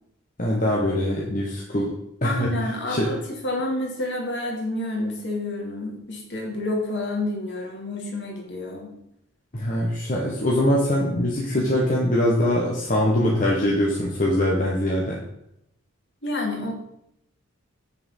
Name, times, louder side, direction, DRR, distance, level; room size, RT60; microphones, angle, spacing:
voice 1, 0.4-1.9 2.2-2.5 2.9-3.1 9.5-15.2, left 1 dB, 35° left, -3 dB, 1.5 m, -22 dB
voice 2, 2.2-8.9 11.5-11.7 16.2-16.7, left 2 dB, 55° left, 0 dB, 2.7 m, -29 dB
8.9 x 6.8 x 5.6 m, 0.79 s
head